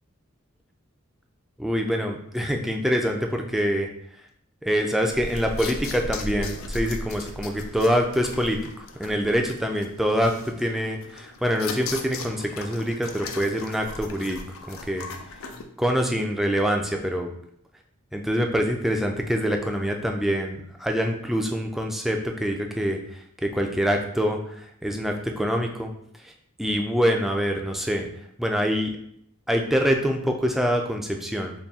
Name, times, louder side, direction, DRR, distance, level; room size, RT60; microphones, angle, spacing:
voice 1, 1.6-3.9 4.6-14.4 14.7-15.1 15.8-17.3 18.1-23.0 23.4-25.9 26.2-26.3 26.6-28.1 28.4-29.0 29.5-31.5, equal, ahead, 2 dB, 0.3 m, -25 dB
sound 1, 5.1-15.6, left 3 dB, 80° left, 0.4 m, -37 dB
4.1 x 2.2 x 3.5 m, 0.70 s
head